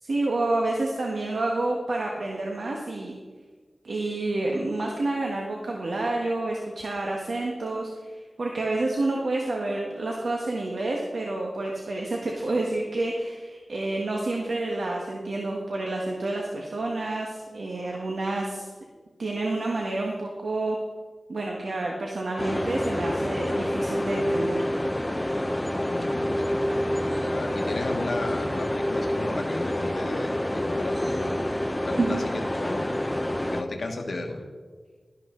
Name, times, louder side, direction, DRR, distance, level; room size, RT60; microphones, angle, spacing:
voice 1, 0.0-3.1 3.8-18.7 19.2-20.8 21.3-24.6 32.0-32.2, right 2 dB, 85° right, -1 dB, 1.4 m, -29 dB
sound 1, 22.4-33.6, left 1 dB, 15° left, 0.8 m, -27 dB
voice 2, 25.8-26.6 27.2-31.3 31.8-33.0 33.5-34.4, left 2 dB, 75° left, 3 dB, 1.3 m, -34 dB
12.5 x 11.5 x 3.8 m, 1.5 s
wide cardioid pair, 75°, 0 cm